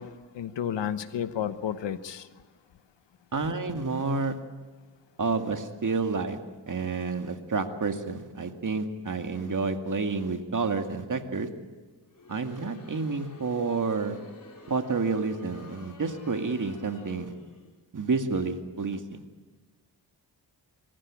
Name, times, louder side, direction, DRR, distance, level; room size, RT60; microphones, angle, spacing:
voice 1, 0.0-2.3, left 9 dB, 90° left, 1.1 m, -32 dB
voice 2, 3.3-4.5 5.2-11.6 12.3-14.3 14.7-17.3 17.9-19.2, right 4 dB, 45° right, 2.3 m, -29 dB
Crowd, 12.1-17.8, left 2 dB, 45° left, 3.9 m, -50 dB
25.5 x 15.0 x 8.9 m
cardioid pair, 75°, 42 cm